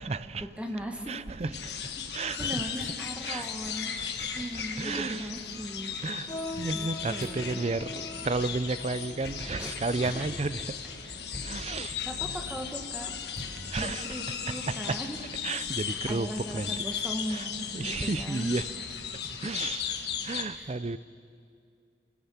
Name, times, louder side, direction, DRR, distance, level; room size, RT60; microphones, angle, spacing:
voice 1, 0.0-0.5 1.1-1.7 2.1-2.6 3.2-3.5 4.4-4.5 4.8-5.3 6.0-6.3 6.6-10.7 11.4-11.9 13.7-14.1 14.7-15.0 15.4-16.7 17.3-17.5 17.7-18.6 19.4-19.8 20.2-21.0, right 3 dB, 35° right, 0.5 m, -32 dB
voice 2, 0.6-1.6 2.1-6.0 6.7-7.6 9.6-10.4 12.0-13.1 13.4-15.2 15.9-18.8 20.5-20.7, equal, 5° right, 1.7 m, -39 dB
sound 1, 0.8-2.3 2.8-3.1 3.4-3.7 4.2-4.3 4.5-5.6 6.6-14.1, equal, 55° right, 4.7 m, -47 dB
sound 2, 1.5-20.4, left 7 dB, 65° left, 1.5 m, -36 dB
sound 3, 6.3-11.9 12.6-12.8 13.5-13.8 14.2-14.3 15.1-15.2, left 2 dB, 20° left, 5.5 m, -44 dB
25.5 x 17.0 x 7.2 m
head